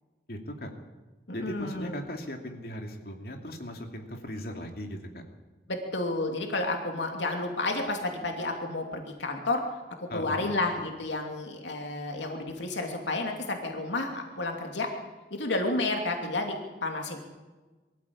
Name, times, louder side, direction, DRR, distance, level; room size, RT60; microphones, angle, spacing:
voice 1, 0.3-0.7 1.3-5.2 10.1-10.5, equal, 55° left, 3 dB, 2.8 m, -38 dB
voice 2, 1.3-1.9 5.7-9.6 10.0-14.9 15.3-17.2, left 2 dB, 85° left, 2 dB, 2.8 m, -31 dB
23.0 x 15.0 x 8.7 m, 1.2 s
head